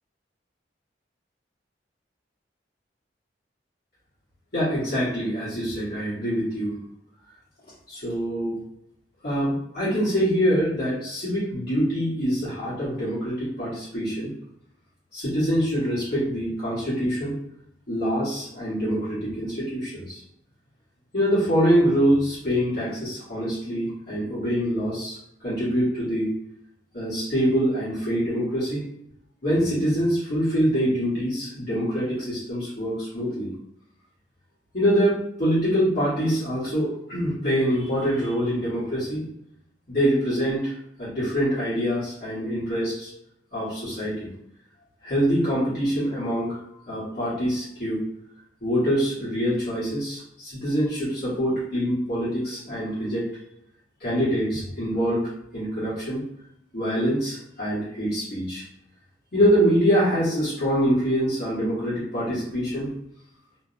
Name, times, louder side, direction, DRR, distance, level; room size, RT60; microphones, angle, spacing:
voice 1, 4.5-6.8 7.9-8.6 9.2-14.3 15.1-17.4 17.9-20.2 21.1-25.2 25.4-26.3 26.9-28.8 29.4-33.5 34.7-39.2 39.9-40.7 41.0-43.1 43.5-44.3 45.0-46.6 46.9-48.0 48.6-53.3 54.0-56.2 56.7-58.6 59.3-62.9, equal, 60° left, -11 dB, 1.2 m, -25 dB
2.5 x 2.0 x 2.5 m, 0.77 s
head